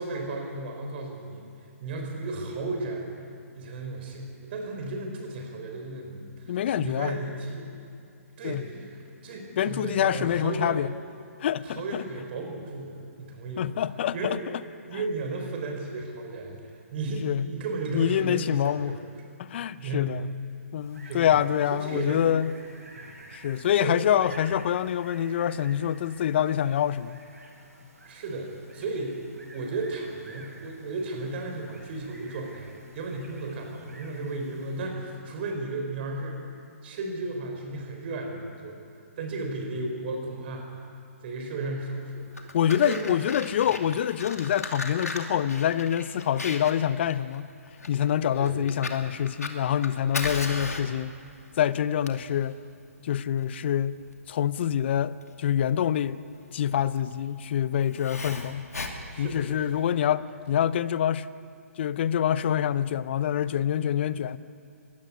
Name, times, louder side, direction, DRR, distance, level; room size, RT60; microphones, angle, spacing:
voice 1, 0.0-1.5 1.8-3.1 3.5-7.7 8.4-10.8 11.6-13.7 14.1-14.4 14.9-19.0 19.8-20.1 21.0-21.3 21.7-22.3 23.0-23.2 23.8-24.0 28.0-29.2 29.5-36.4 36.8-38.7 39.2-40.7 41.2-43.2 48.4-48.6 59.1-59.9, right 2 dB, 45° right, 3 dB, 3.9 m, -34 dB
voice 2, 6.5-7.2 8.4-8.6 9.6-10.9 11.4-12.0 13.6-14.6 17.1-17.5 17.9-19.0 19.4-20.3 20.7-22.5 23.3-27.2 42.5-47.4 47.9-51.2 51.6-52.6 53.0-54.0 54.3-56.2 56.5-58.7 59.2-61.3 61.8-64.4, left 10 dB, 45° left, 16 dB, 0.7 m, -26 dB
sound 1, 20.7-35.0, right 2 dB, 85° right, 7.7 m, -51 dB
Fire, 42.2-59.9, left 3 dB, 85° left, 2.6 m, -38 dB
21.5 x 16.0 x 9.7 m, 2.5 s
figure-of-eight pair, 135°, 8 cm